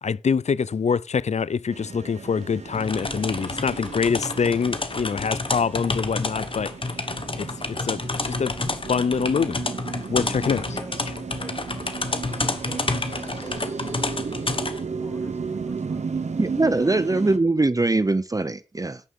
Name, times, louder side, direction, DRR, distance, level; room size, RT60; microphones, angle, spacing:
voice 1, 0.0-6.7 7.4-8.5 8.9-9.6 10.1-10.6, left 6 dB, 70° left, 0.5 m, -25 dB
sound 1, 1.7-17.4, right 5 dB, 75° right, 1.1 m, -34 dB
sound 2, 2.7-14.8, left 3 dB, 50° left, 1.4 m, -30 dB
voice 2, 10.2-11.6 11.9-14.1 14.5-14.6 15.0-16.3 16.8-17.2, left 1 dB, 20° left, 3.2 m, -46 dB
voice 3, 16.4-19.0, right 2 dB, 30° right, 0.6 m, -22 dB
11.0 x 6.5 x 6.6 m
cardioid pair, 40°, 12 cm